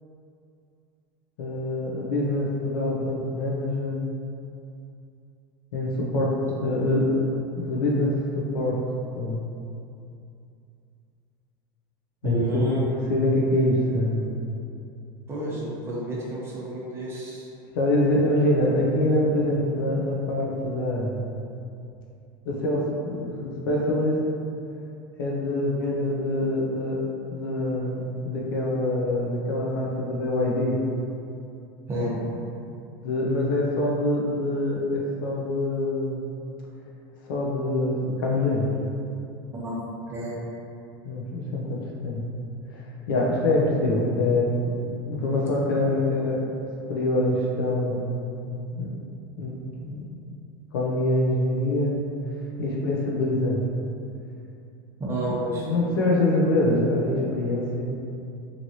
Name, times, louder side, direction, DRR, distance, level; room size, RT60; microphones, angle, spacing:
voice 1, 1.4-4.0 5.7-6.3 6.6-8.8 9.2-9.4 12.2-14.3 17.7-21.2 22.4-24.2 25.2-27.0 27.3-30.8 33.0-36.2 37.3-38.7 41.0-42.2 42.7-44.5 44.8-46.5 46.9-48.1 48.4-48.9 49.4-49.6 49.8-50.0 50.7-52.0 52.6-53.6 55.3-55.4 55.6-57.8, left 1 dB, 90° left, -3 dB, 0.5 m, -25 dB
voice 2, 12.2-12.8 15.3-17.5 31.9-32.1 39.5-39.7 40.1-40.4 55.0-55.7, right 1 dB, 20° right, -6 dB, 0.7 m, -29 dB
3.1 x 2.5 x 2.7 m, 2.6 s
supercardioid pair, 135°, 11 cm